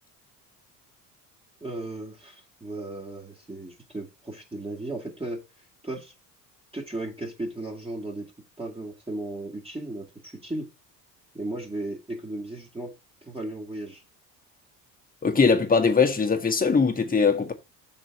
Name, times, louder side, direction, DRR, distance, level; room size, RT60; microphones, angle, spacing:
voice 1, 1.6-5.4 5.8-6.1 6.7-8.3 8.6-10.7 11.3-12.9 13.2-14.0, right 2 dB, 10° right, 2.3 m, -35 dB
voice 2, 15.2-17.5, left 5 dB, 15° left, 1.5 m, -21 dB
6.1 x 4.3 x 6.0 m
hypercardioid pair, 65°, 50 cm